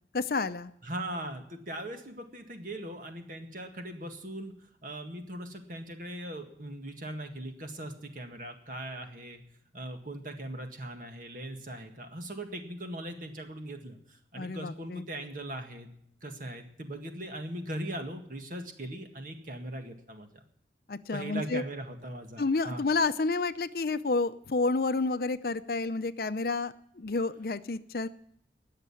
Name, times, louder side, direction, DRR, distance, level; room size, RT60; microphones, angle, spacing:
voice 1, 0.1-0.7 14.4-15.0 20.9-21.6 22.4-28.1, left 3 dB, 55° left, 13 dB, 0.6 m, -30 dB
voice 2, 0.8-9.4 9.7-15.9 16.2-20.4 21.1-22.9, right 1 dB, 50° right, 5 dB, 1.9 m, -40 dB
19.5 x 6.7 x 9.8 m, 0.70 s
head